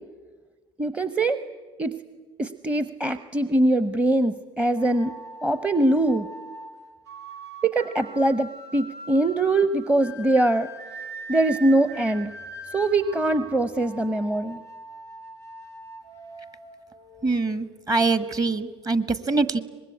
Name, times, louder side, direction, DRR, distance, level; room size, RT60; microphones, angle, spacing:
voice 1, 0.8-1.4 1.8-1.9 2.4-5.2 5.4-6.3 7.6-10.7 11.3-12.3 12.7-14.6, right 2 dB, 10° right, 12 dB, 0.9 m, -22 dB
sound 1, 4.8-17.6, right 2 dB, 75° right, 3.8 m, -42 dB
voice 2, 17.2-19.6, right 3 dB, 25° right, 13 dB, 1.6 m, -24 dB
24.5 x 21.0 x 9.8 m, 1.4 s
figure-of-eight pair, 70°, 15 cm